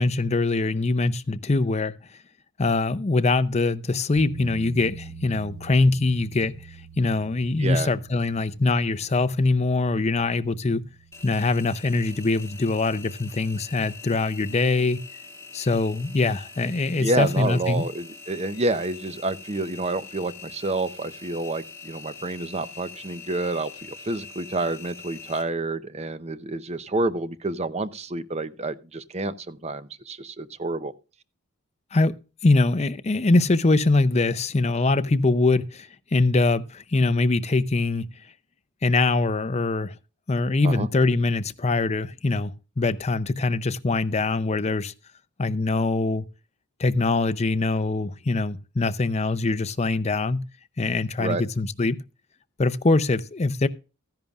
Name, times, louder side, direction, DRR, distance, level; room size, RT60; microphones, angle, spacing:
voice 1, 0.0-1.9 2.6-10.8 11.2-15.0 15.5-17.8 31.9-32.2 32.4-38.1 38.8-40.0 40.3-44.9 45.4-46.2 46.8-50.5 50.8-52.0 52.6-53.7, left 3 dB, 30° left, 0.5 m, -23 dB
sound 1, 4.2-13.1, right 3 dB, 70° right, 6.3 m, -45 dB
voice 2, 7.6-7.9 17.0-30.9 40.6-40.9 51.2-51.4, right 2 dB, 30° right, 0.6 m, -29 dB
Engine, 11.1-25.4, left 4 dB, 10° left, 2.2 m, -44 dB
14.5 x 10.5 x 2.4 m
head